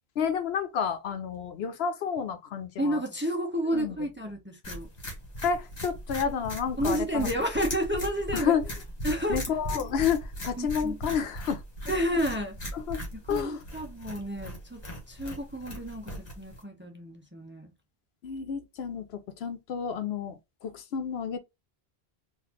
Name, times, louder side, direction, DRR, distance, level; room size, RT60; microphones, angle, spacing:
voice 1, 0.2-3.0 3.7-4.0 5.4-7.3 8.3-8.6 9.3-11.6 12.7-13.0 13.3-13.6 18.2-21.4, left 7 dB, 75° left, 0.8 m, -30 dB
voice 2, 2.8-4.9 6.8-8.5 9.0-9.4 10.6-11.0 11.9-12.6 13.3-14.8 15.1-17.7, equal, 15° right, 0.6 m, -31 dB
sound 1, 4.6-16.6, equal, 40° left, 1.4 m, -38 dB
4.0 x 2.6 x 2.8 m
omnidirectional pair, 1.1 m